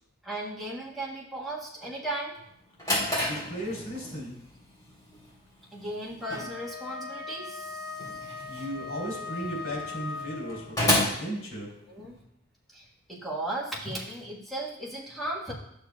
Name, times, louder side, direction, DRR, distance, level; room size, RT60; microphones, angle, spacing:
voice 1, 0.2-2.4 5.7-8.3 11.9-12.2 12.7-15.5, right 1 dB, ahead, -6 dB, 1.5 m, -36 dB
Drawer open or close, 2.5-12.2, left 1 dB, 20° left, 3.2 m, -33 dB
voice 2, 3.3-4.4 8.5-10.8 11.2-11.7, equal, 90° left, -5 dB, 3.4 m, -35 dB
Wind instrument woodwind instrument, 6.2-10.8, left 4 dB, 50° left, 0.7 m, -39 dB
11.5 x 6.7 x 2.4 m, 0.77 s
head